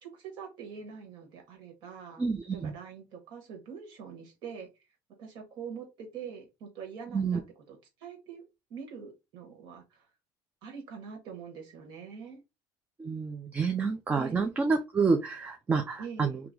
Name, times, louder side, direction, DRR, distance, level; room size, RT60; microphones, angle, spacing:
voice 1, 0.0-2.2 2.5-4.7 5.2-7.4 7.7-10.1 10.6-12.4 14.2-14.5 16.0-16.3, right 6 dB, 60° right, 1.5 m, -44 dB
voice 2, 2.2-2.7 7.1-7.4 13.0-16.4, right 4 dB, 15° right, 0.4 m, -28 dB
3.0 x 2.3 x 3.7 m
cardioid pair, 155°, 9 cm